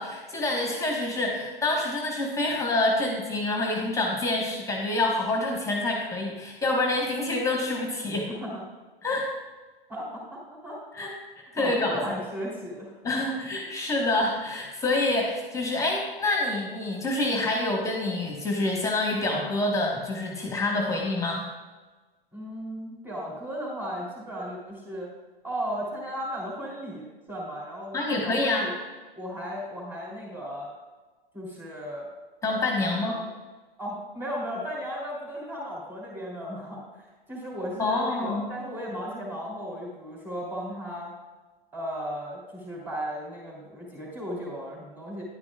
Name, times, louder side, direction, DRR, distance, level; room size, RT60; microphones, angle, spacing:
voice 1, 0.0-8.3 9.0-9.3 10.9-11.1 11.5-12.0 13.0-21.5 27.9-28.7 32.4-33.1 37.8-38.5, left 2 dB, 10° left, 0 dB, 1.4 m, -27 dB
voice 2, 9.9-11.1 11.5-13.2 22.3-25.1 25.4-28.7 29.1-30.7 31.3-32.1 32.9-33.3 33.8-41.1 41.7-45.2, equal, 5° right, -5 dB, 3.2 m, -35 dB
11.0 x 9.7 x 2.4 m, 1.3 s
hypercardioid pair, 110°, 29 cm